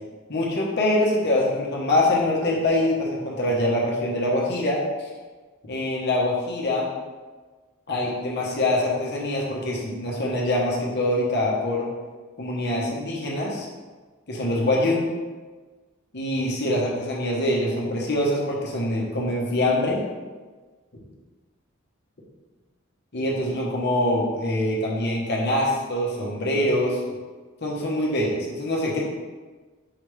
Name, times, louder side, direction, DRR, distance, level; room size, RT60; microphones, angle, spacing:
voice 1, 0.3-5.1 5.6-6.9 7.9-11.9 12.4-13.7 14.3-15.0 16.1-20.0 23.1-27.0 27.6-29.0, left 1 dB, 55° left, -3 dB, 1.0 m, -24 dB
4.9 x 3.4 x 3.2 m, 1.3 s
head